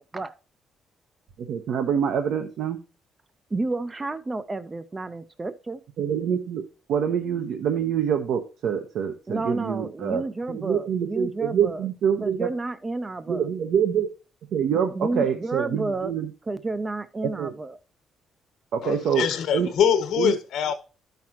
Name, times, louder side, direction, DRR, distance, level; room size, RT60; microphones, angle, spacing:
voice 1, 1.4-2.8 6.0-6.6 6.9-12.5 13.3-14.1 14.5-16.3 17.4-17.5 18.7-19.3 19.5-19.7 20.2-20.3, right 8 dB, 70° right, 1.0 m, -25 dB
voice 2, 3.5-5.8 9.3-11.9 12.2-13.5 14.7-16.1 16.4-17.8, right 3 dB, 20° right, 0.4 m, -31 dB
voice 3, 18.8-20.7, left 8 dB, 75° left, 1.3 m, -23 dB
12.5 x 5.7 x 3.0 m
cardioid pair, 135°, 0 cm